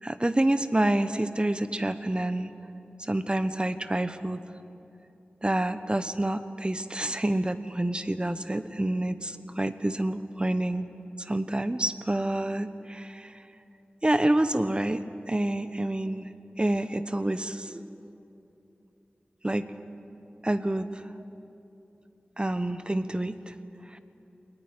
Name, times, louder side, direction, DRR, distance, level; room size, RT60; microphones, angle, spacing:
voice 1, 0.0-2.5 3.1-4.4 5.4-10.9 11.2-13.3 14.0-16.3 16.6-17.8 19.4-19.6 20.4-20.9 22.4-23.5 23.9-24.0, right 1 dB, 25° right, 11 dB, 1.2 m, -28 dB
21.0 x 20.0 x 9.8 m, 2.9 s
wide cardioid pair, 45°, 4 cm